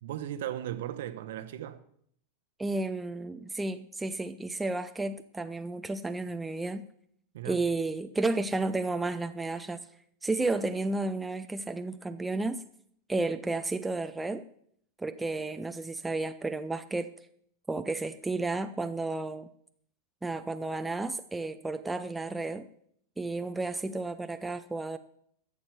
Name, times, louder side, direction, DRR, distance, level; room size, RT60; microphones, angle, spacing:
voice 1, 0.0-1.8 7.3-7.6, right 12 dB, 55° right, 1.0 m, -37 dB
voice 2, 2.6-6.8 7.5-9.8 10.2-12.6 13.1-14.4 15.0-17.1 17.7-19.5 20.2-22.7 23.2-25.0, right 2 dB, 10° right, 0.5 m, -32 dB
13.0 x 7.3 x 7.0 m
figure-of-eight pair, 90°, 0 cm